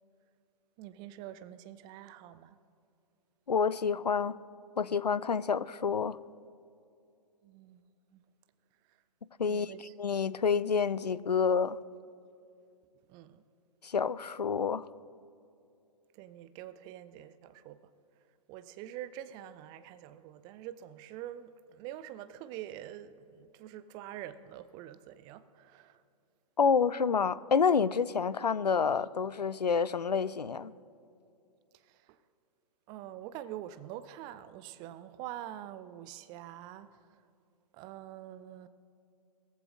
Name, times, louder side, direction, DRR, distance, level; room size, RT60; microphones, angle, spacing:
voice 1, 0.8-2.6 7.4-8.2 9.5-9.9 13.1-13.4 16.1-17.8 18.5-26.0 31.7-32.2 32.9-37.0 37.7-38.7, right 12 dB, 20° right, 0.5 m, -45 dB
voice 2, 3.5-4.4 4.8-6.2 9.4-9.7 10.0-11.8 13.8-14.9 26.6-30.7, left 6 dB, 80° left, 0.5 m, -28 dB
20.5 x 14.5 x 2.5 m
figure-of-eight pair, 115°, 20 cm